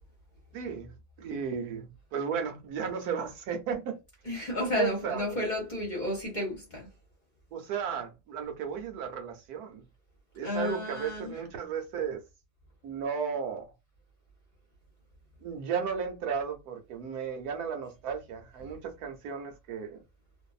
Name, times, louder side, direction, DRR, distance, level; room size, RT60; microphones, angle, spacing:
voice 1, 0.5-4.0 4.8-5.2 7.5-9.8 10.4-12.2 12.8-13.7 15.4-20.0, right 7 dB, 75° right, 1.2 m, -34 dB
voice 2, 4.2-6.9 10.4-11.4 18.6-18.7, left 1 dB, 35° left, 0.9 m, -32 dB
2.6 x 2.5 x 2.3 m
omnidirectional pair, 1.7 m